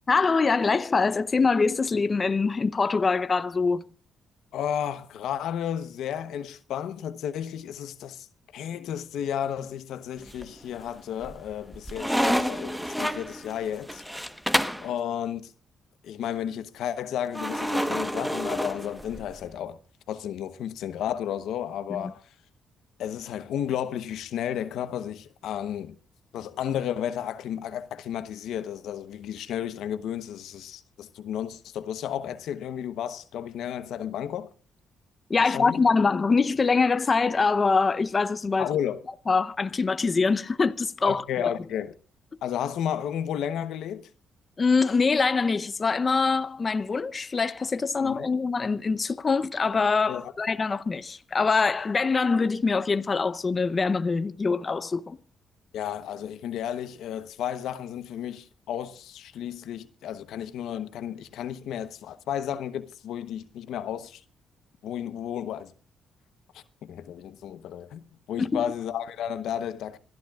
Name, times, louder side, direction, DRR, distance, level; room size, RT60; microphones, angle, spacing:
voice 1, 0.1-3.8 35.3-38.7 39.3-41.5 44.6-55.2 68.4-68.6, left 4 dB, 35° left, 0.7 m, -24 dB
voice 2, 4.5-8.3 8.5-14.3 14.8-15.5 16.0-19.8 20.1-22.3 23.0-25.9 26.3-34.5 35.4-35.8 38.6-39.0 41.0-41.9 42.4-44.1 48.0-48.3 50.1-50.2 55.7-64.2 64.8-65.7 66.5-70.0, left 9 dB, 80° left, 1.0 m, -33 dB
sound 1, 10.2-10.8 11.2-14.9 17.3-19.4, equal, 5° right, 1.1 m, -29 dB
27.0 x 13.5 x 2.4 m
cardioid pair, 80°, 0 cm